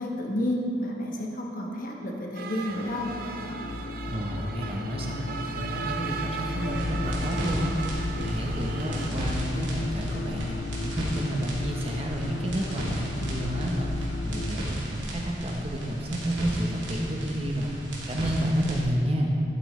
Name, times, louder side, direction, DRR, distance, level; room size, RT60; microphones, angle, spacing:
voice 1, 0.0-3.1, left 1 dB, 45° left, -1 dB, 1.2 m, -30 dB
sound 1, 2.3-9.1, right 5 dB, 50° right, 0.5 m, -37 dB
sound 2, 2.7-14.6, left 2 dB, 70° left, 0.5 m, -34 dB
voice 2, 4.1-17.7 18.1-19.4, equal, 30° right, 0 dB, 0.9 m, -30 dB
sound 3, 6.6-18.8, equal, 85° right, 2.3 m, -36 dB
11.5 x 8.1 x 3.2 m, 2.7 s
head